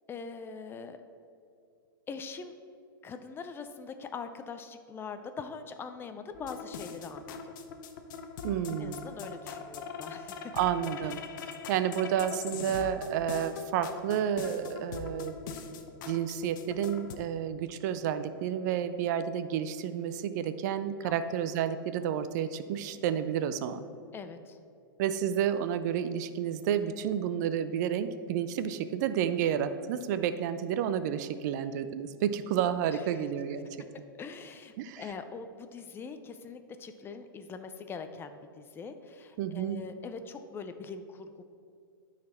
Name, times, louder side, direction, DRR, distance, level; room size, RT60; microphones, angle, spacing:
voice 1, 0.1-1.0 2.1-2.6 3.0-7.6 8.8-10.5 11.0-11.2 21.0-21.2 24.1-24.6 32.9-33.0 34.2-41.4, left 5 dB, 20° left, 8 dB, 0.5 m, -42 dB
sound 1, 6.3-17.2, left 6 dB, 60° left, 0.8 m, -42 dB
voice 2, 8.4-9.1 10.5-11.2 11.7-15.4 16.1-23.8 25.0-33.7 34.8-35.0 39.4-39.8, right 9 dB, 50° right, 11 dB, 0.5 m, -30 dB
12.0 x 4.1 x 4.4 m, 2.4 s
hypercardioid pair, 120°, 12 cm